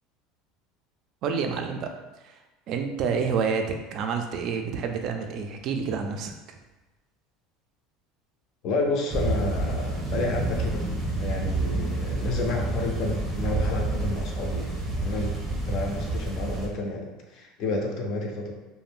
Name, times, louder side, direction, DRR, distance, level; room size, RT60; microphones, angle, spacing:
voice 1, 1.2-1.9 2.2-2.3 2.7-6.6, right 5 dB, 45° right, 5 dB, 0.3 m, -28 dB
voice 2, 8.6-10.9 11.2-15.3 15.7-18.5, left 2 dB, 45° left, 1 dB, 0.5 m, -30 dB
sound 1, 9.1-16.7, right 2 dB, 15° right, 0.6 m, -29 dB
2.4 x 2.1 x 3.4 m, 1.1 s
cardioid pair, 155°, 0 cm